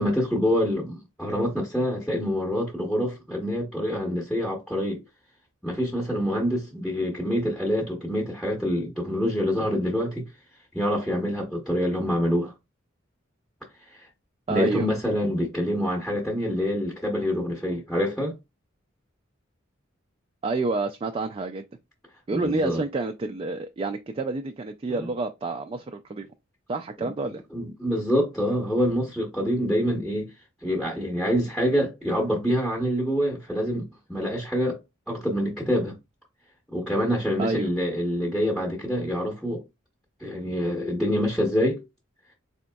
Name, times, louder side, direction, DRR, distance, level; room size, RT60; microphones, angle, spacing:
voice 1, 0.0-5.0 5.6-10.3 10.7-12.5 14.5-18.3 22.3-22.8 24.9-25.1 27.0-27.1 27.5-30.3 30.6-34.8 35.1-36.0 36.7-39.6 40.2-41.8, equal, ahead, 0.8 m, -26 dB
voice 2, 14.5-14.9 20.4-21.6 22.3-26.3 26.7-27.4 37.4-37.7, right 3 dB, 30° right, 0.3 m, -29 dB
4.0 x 3.5 x 2.2 m
head